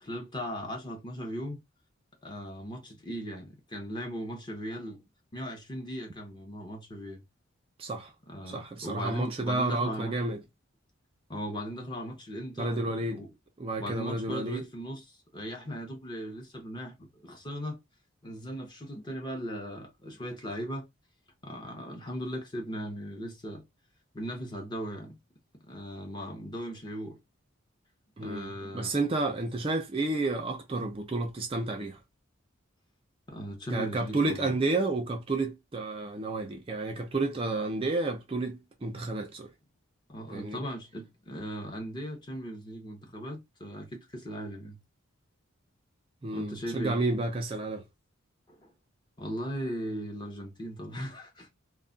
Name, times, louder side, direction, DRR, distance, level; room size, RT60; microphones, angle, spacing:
voice 1, 0.0-1.6 2.2-5.0 5.3-7.2 8.3-10.2 11.3-13.3 13.8-17.8 18.2-20.9 21.4-23.6 24.1-25.2 25.7-27.2 28.2-28.9 33.3-34.5 40.1-44.8 46.3-47.0 48.5-48.7 49.2-51.5, equal, 20° left, 0.6 m, -38 dB
voice 2, 7.8-8.1 8.5-10.4 12.6-13.2 13.6-14.7 28.2-32.0 33.7-39.5 40.3-40.6 46.2-47.8, right 2 dB, 25° right, 0.3 m, -31 dB
2.3 x 2.1 x 3.7 m
head